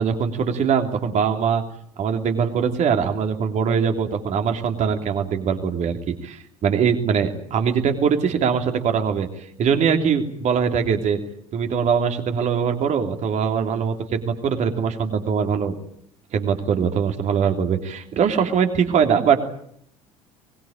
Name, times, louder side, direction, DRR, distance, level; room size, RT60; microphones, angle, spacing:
voice 1, 0.0-1.6 2.0-11.2 11.5-15.7 16.3-19.5, right 7 dB, 40° right, 5 dB, 3.2 m, -22 dB
23.0 x 21.0 x 8.9 m, 0.69 s
figure-of-eight pair, 60°, 18 cm